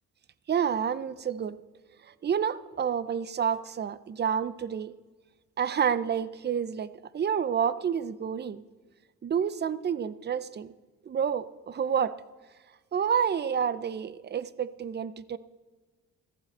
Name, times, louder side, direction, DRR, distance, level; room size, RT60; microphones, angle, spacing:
voice 1, 0.5-1.6 2.0-5.0 5.6-8.6 9.2-10.7 11.1-12.2 12.9-15.4, right 7 dB, 35° right, 0.6 m, -29 dB
14.5 x 14.5 x 4.3 m
cardioid pair, 90°, 30 cm